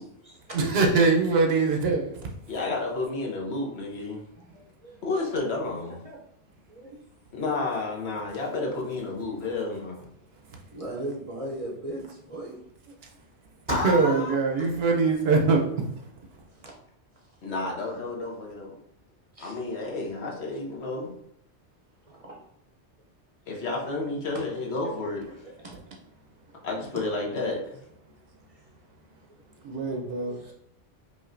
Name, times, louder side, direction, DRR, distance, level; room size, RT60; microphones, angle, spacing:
voice 1, 0.0-0.7 3.6-4.1 4.3-5.5 5.9-6.2 6.7-7.0 8.3-8.6 10.7-12.6 12.9-13.0 16.6-16.7 17.1-17.3 17.9-18.0 19.3-19.7 20.2-20.3 22.1-22.4 24.0-24.1 24.6-25.1 25.4-25.7 28.5-28.7 29.3-30.5, right 1 dB, 35° right, -2 dB, 0.7 m, -40 dB
voice 2, 0.5-2.3 10.5-10.6 13.7-16.0 25.2-25.4 27.0-27.1 29.6-30.5, right 4 dB, 65° right, 1 dB, 0.9 m, -23 dB
voice 3, 2.5-4.2 5.0-6.0 7.3-10.0 13.7-14.3 17.4-18.8 19.4-21.1 23.5-25.2 26.6-27.6, left 3 dB, 70° left, -1 dB, 1.2 m, -31 dB
5.1 x 2.6 x 2.5 m, 0.75 s
omnidirectional pair, 1.1 m